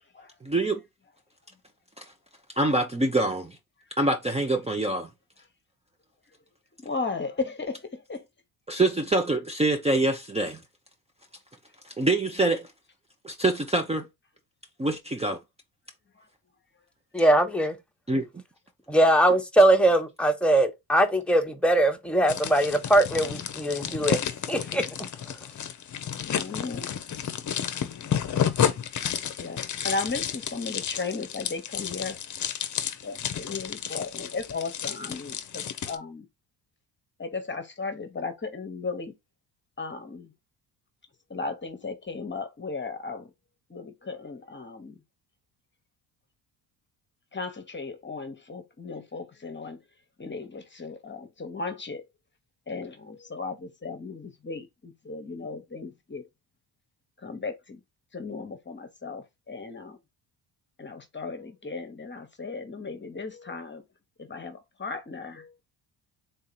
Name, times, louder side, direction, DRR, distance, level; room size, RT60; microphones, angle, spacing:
voice 1, 0.4-0.8 2.0-2.1 2.6-3.6 4.0-5.1 8.7-10.6 11.8-12.7 13.2-14.1 14.8-15.4 18.1-18.3, right 2 dB, 15° right, 0.8 m, -25 dB
voice 2, 6.8-8.2 23.8-24.1 26.3-26.9 29.4-32.2 33.0-36.3 37.2-39.1 39.8-40.3 41.3-43.3 43.7-45.0 47.3-49.8 50.2-52.0 52.7-56.3 57.2-57.8 58.1-60.0 60.8-63.8 64.2-65.5, left 4 dB, 25° left, 1.2 m, -36 dB
voice 3, 17.1-17.8 18.9-24.2 24.5-24.9, right 1 dB, ahead, 1.2 m, -21 dB
sound 1, 22.3-36.0, left 8 dB, 40° left, 0.8 m, -31 dB
3.9 x 2.8 x 4.1 m
supercardioid pair, 65°, 44 cm